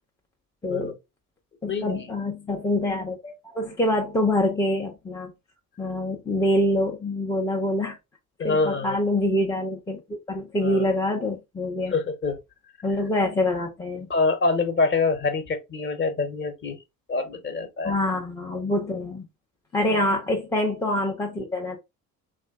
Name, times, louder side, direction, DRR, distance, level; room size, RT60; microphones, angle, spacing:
voice 1, 0.6-0.9 1.6-5.3 5.8-8.0 8.4-11.9 12.8-14.1 17.8-19.3 19.7-21.8, left 1 dB, 10° left, 0.3 m, -25 dB
voice 2, 1.6-2.1 8.4-9.0 10.6-10.8 11.9-12.4 14.1-16.8 17.1-17.9 19.9-20.0, left 3 dB, 25° left, 0.7 m, -25 dB
3.1 x 2.5 x 2.2 m
figure-of-eight pair, 50°, 46 cm